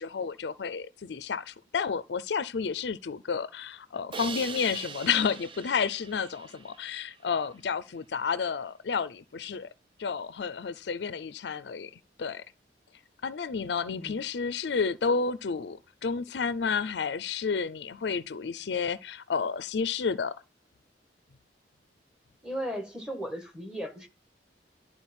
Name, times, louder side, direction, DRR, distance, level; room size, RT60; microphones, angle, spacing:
voice 1, 0.0-9.7 10.0-11.9 12.2-12.4 13.2-20.3, left 5 dB, 65° left, 0.5 m, -31 dB
Crash cymbal, 4.1-7.2, right 5 dB, 30° right, 0.6 m, -41 dB
voice 2, 13.9-14.2 22.4-24.1, equal, 5° right, 1.4 m, -36 dB
11.5 x 4.3 x 4.3 m
head